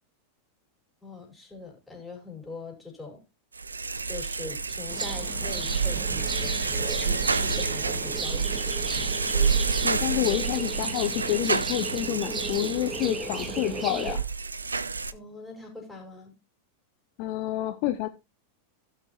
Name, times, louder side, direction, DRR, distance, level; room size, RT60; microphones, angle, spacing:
voice 1, 1.0-3.2 4.0-8.7 8.9-9.1 15.1-16.3, left 3 dB, 5° left, 5.1 m, -42 dB
sound 1, 3.5-15.1, right 5 dB, 75° right, 0.5 m, -29 dB
sound 2, 4.9-14.2, right 3 dB, 20° right, 1.6 m, -35 dB
voice 2, 9.8-14.2 17.2-18.1, left 15 dB, 45° left, 0.7 m, -28 dB
16.0 x 6.4 x 3.0 m
figure-of-eight pair, 90°, 0 cm